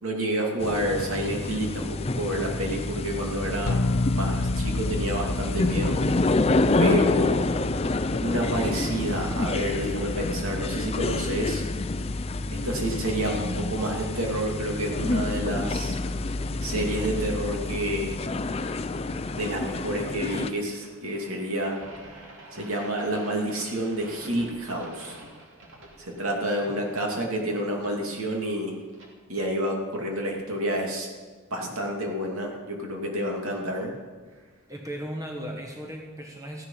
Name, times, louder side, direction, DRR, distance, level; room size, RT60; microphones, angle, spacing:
voice 1, 0.0-3.8 4.1-6.0 6.8-7.5 8.2-11.7 12.5-16.0 16.6-18.2 19.3-21.8 22.5-25.2 26.0-28.7 29.3-31.1 31.5-33.9, right 1 dB, 80° right, 0 dB, 2.7 m, -29 dB
sound 1, 0.6-20.5, left 2 dB, 30° left, 0.5 m, -28 dB
sound 2, 3.7-17.1, left 2 dB, 90° left, 0.6 m, -34 dB
sound 3, 16.5-29.1, right 1 dB, 60° right, 2.8 m, -49 dB
voice 2, 34.7-36.7, equal, 15° right, 1 dB, 1.4 m, -36 dB
14.5 x 10.5 x 5.8 m, 1.5 s
head